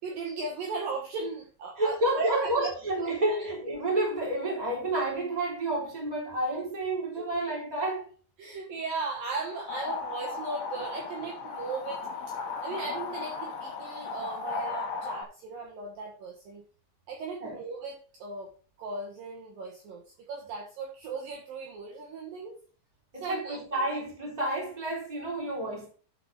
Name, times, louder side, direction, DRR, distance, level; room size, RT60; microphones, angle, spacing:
voice 1, 0.0-2.7 3.0-3.4 7.1-7.3 8.4-12.0 12.6-16.6 17.1-18.5 18.8-20.0 20.3-22.5 23.2-23.6, right 4 dB, 65° right, 2.6 m, -37 dB
voice 2, 1.8-8.1 11.6-11.7 17.4-17.6 23.1-25.9, right 1 dB, 10° right, 3.1 m, -30 dB
sound 1, 9.3-15.2, left 4 dB, 70° left, 3.3 m, -36 dB
11.5 x 4.8 x 5.2 m
omnidirectional pair, 4.9 m